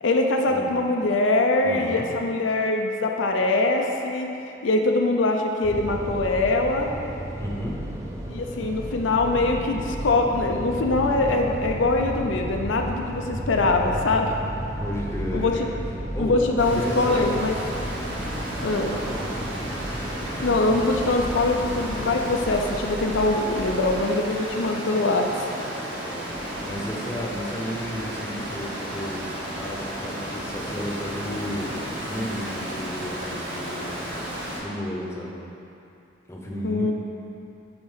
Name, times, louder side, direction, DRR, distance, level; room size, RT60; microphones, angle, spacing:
voice 1, 0.0-4.3 4.6-6.9 8.3-14.3 15.3-15.5 16.2-17.6 18.6-19.0 20.4-25.3 36.6-36.9, left 2 dB, 80° left, 2 dB, 0.6 m, -23 dB
voice 2, 1.6-2.1 7.4-7.8 14.8-15.7 16.1-16.3 16.6-17.4 18.9-19.3 24.3-24.6 26.0-26.3 26.6-29.3 29.6-31.7 32.1-33.9 34.5-35.4 36.3-36.9, equal, 15° left, -3 dB, 0.8 m, -33 dB
sound 1, 5.6-23.9, right 1 dB, 15° right, 0.5 m, -33 dB
Water, 16.6-34.6, equal, 60° right, 1.8 m, -33 dB
7.8 x 4.2 x 5.6 m, 2.8 s
head